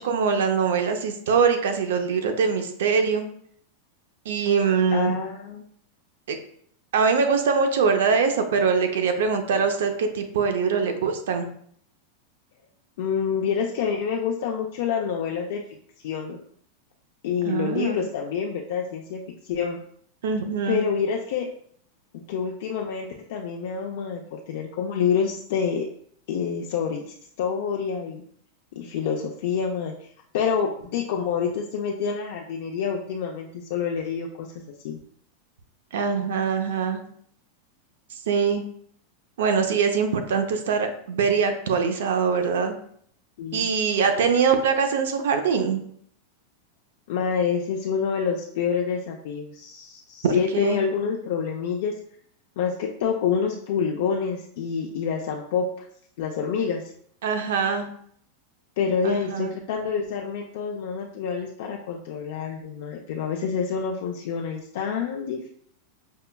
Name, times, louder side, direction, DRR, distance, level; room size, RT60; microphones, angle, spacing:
voice 1, 0.0-3.3 4.3-5.2 6.3-6.4 6.9-11.5 17.4-18.0 20.2-20.8 35.9-37.0 38.1-38.6 39.4-42.7 43.5-45.8 50.2-50.8 57.2-57.9 59.0-59.5, right 5 dB, 80° right, 6 dB, 0.5 m, -23 dB
voice 2, 4.9-5.7 13.0-15.6 16.0-16.4 17.2-19.8 20.7-21.5 22.3-25.8 26.3-28.2 28.8-29.9 30.3-34.5 34.8-35.0 43.4-43.6 47.1-51.9 52.6-55.9 56.2-56.8 58.8-65.5, left 6 dB, 65° left, 0 dB, 0.4 m, -27 dB
5.3 x 2.2 x 2.2 m, 0.63 s
supercardioid pair, 155°, 0 cm